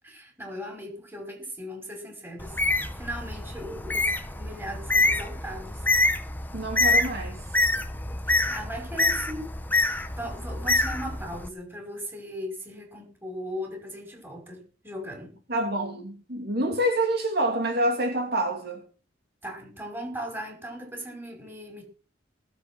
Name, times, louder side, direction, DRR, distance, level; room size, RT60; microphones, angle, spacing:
voice 1, 0.0-2.6 2.9-5.9 8.3-15.4 19.4-21.8, equal, 10° right, 5.6 m, -38 dB
Bird, 2.4-11.5, left 2 dB, 10° left, 1.0 m, -26 dB
voice 2, 6.5-7.4 15.5-18.8, right 1 dB, 55° right, 2.9 m, -27 dB
19.5 x 8.0 x 6.2 m
head